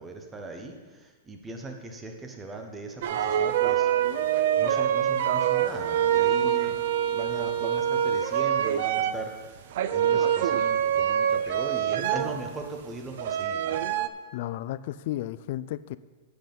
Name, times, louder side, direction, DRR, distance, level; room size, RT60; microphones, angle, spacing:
voice 1, 0.0-3.9 4.6-6.8 7.1-9.7 9.9-13.8, right 3 dB, 10° right, 4 dB, 0.9 m, -39 dB
sound 1, 3.0-9.3 9.7-12.6 13.2-14.1, right 9 dB, 55° right, 0.5 m, -25 dB
voice 2, 6.4-6.8 14.3-16.0, left 14 dB, 45° left, 17 dB, 0.3 m, -34 dB
8.5 x 7.8 x 5.4 m, 1.4 s
supercardioid pair, 170°, 0 cm